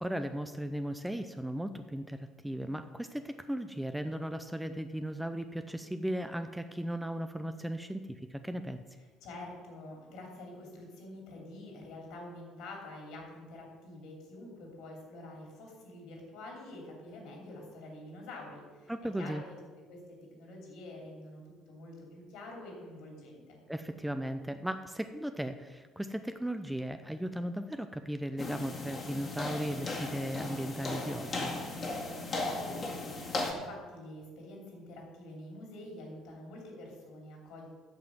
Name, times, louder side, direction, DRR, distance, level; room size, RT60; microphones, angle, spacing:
voice 1, 0.0-8.8 18.9-19.4 23.7-31.5, right 1 dB, 5° right, 8 dB, 0.6 m, -36 dB
voice 2, 9.2-18.9 19.2-19.4 19.9-23.6 32.3-37.7, left 1 dB, 60° left, 1 dB, 2.9 m, -47 dB
sound 1, 28.4-33.5, left 2 dB, 35° left, 1.9 m, -37 dB
8.0 x 6.8 x 7.4 m, 1.4 s
figure-of-eight pair, 55°, 0 cm